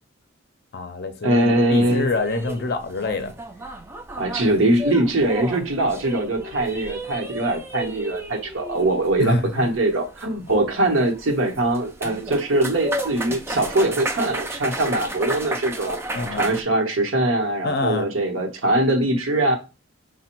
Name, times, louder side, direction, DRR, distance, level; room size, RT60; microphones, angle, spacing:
voice 1, 0.7-3.3 9.2-9.7 10.5-10.6 16.1-16.5 17.6-18.1, left 3 dB, 50° left, 0.5 m, -26 dB
voice 2, 1.2-2.1 4.2-16.0 16.3-19.6, right 1 dB, 80° right, 0.9 m, -22 dB
sound 1, 1.8-16.6, right 1 dB, 10° right, 0.4 m, -33 dB
5.1 x 2.1 x 4.4 m
head